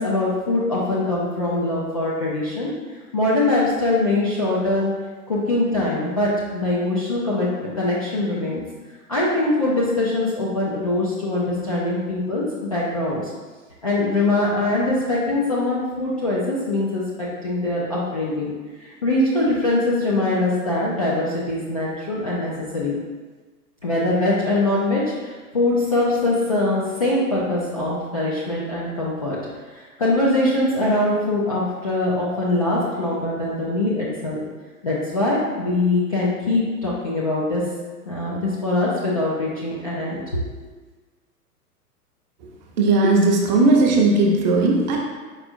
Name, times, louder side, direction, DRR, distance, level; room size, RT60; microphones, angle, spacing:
voice 1, 0.0-2.7 3.1-4.9 5.3-8.6 9.1-13.3 13.8-18.5 18.8-22.9 23.8-29.4 29.7-34.4 34.8-37.6 38.1-40.2, left 2 dB, 25° left, -7 dB, 0.3 m, -22 dB
voice 2, 42.8-45.0, right 2 dB, 30° right, -1 dB, 0.6 m, -17 dB
4.9 x 4.1 x 2.5 m, 1.4 s
figure-of-eight pair, 110°, 47 cm